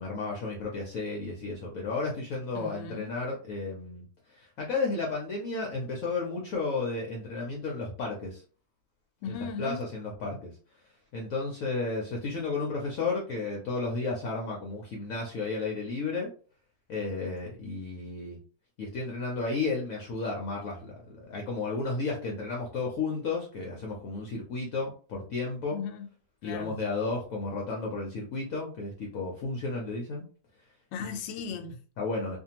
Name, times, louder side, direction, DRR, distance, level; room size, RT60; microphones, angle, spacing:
voice 1, 0.0-8.4 9.3-10.5 11.1-16.3 16.9-18.4 18.8-20.9 21.3-25.8 26.4-30.2 32.0-32.4, left 3 dB, 65° left, 0.9 m, -33 dB
voice 2, 2.5-3.2 9.2-9.9 25.7-26.1 26.4-26.8 30.9-31.8, left 5 dB, 85° left, 1.2 m, -37 dB
2.6 x 2.5 x 2.8 m
omnidirectional pair, 1.9 m